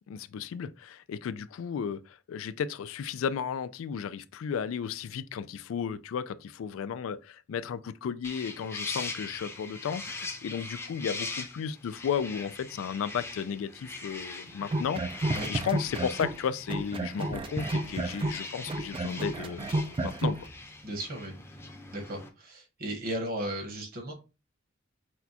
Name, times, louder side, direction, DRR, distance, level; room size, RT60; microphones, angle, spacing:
voice 1, 0.1-20.4, left 7 dB, 85° left, 0.3 m, -34 dB
sound 1, 8.2-22.3, left 3 dB, 15° left, 0.6 m, -41 dB
sound 2, 14.6-16.4 16.7-20.4, right 2 dB, 25° right, 0.3 m, -31 dB
voice 2, 20.8-21.3 21.9-24.1, right 1 dB, 45° right, 1.3 m, -35 dB
6.1 x 2.2 x 2.8 m
head